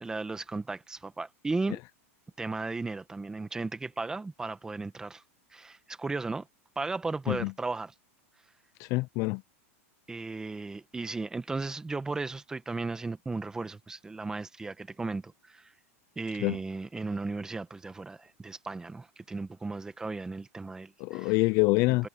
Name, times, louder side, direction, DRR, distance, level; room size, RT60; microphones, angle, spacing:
voice 1, 0.0-1.8 2.4-5.2 5.5-6.5 6.8-7.9 10.1-15.7 16.1-21.3 21.9-22.1, right 3 dB, 10° right, 1.4 m, -35 dB
voice 2, 8.8-9.4 16.4-16.6 21.0-22.1, left 25 dB, 40° left, 0.4 m, -26 dB
supercardioid pair, 150°, 8 cm